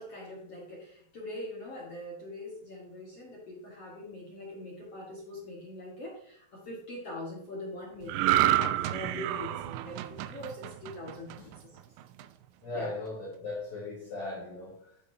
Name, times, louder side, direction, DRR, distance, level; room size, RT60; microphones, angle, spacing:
voice 1, 0.0-11.8 12.7-12.9, left 1 dB, 55° left, -4 dB, 1.8 m, -43 dB
sound 1, 8.1-11.6 12.0-12.2, right 13 dB, 85° right, 2.8 m, -29 dB
voice 2, 12.6-15.1, left 2 dB, 30° left, -6 dB, 3.4 m, -38 dB
11.0 x 8.5 x 2.8 m, 0.66 s
omnidirectional pair, 5.3 m